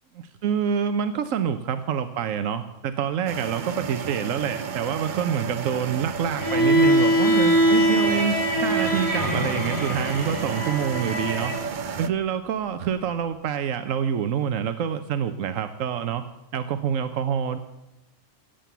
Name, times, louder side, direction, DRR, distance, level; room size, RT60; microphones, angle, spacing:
voice 1, 0.1-11.5 12.0-16.3 16.5-17.6, right 8 dB, 90° right, 10 dB, 1.1 m, -27 dB
sound 1, 3.3-12.1, right 5 dB, 45° right, 0.8 m, -32 dB
Bowed string instrument, 6.4-11.6, equal, 15° left, 3.8 m, -22 dB
17.0 x 7.7 x 6.9 m, 0.99 s
omnidirectional pair, 1.3 m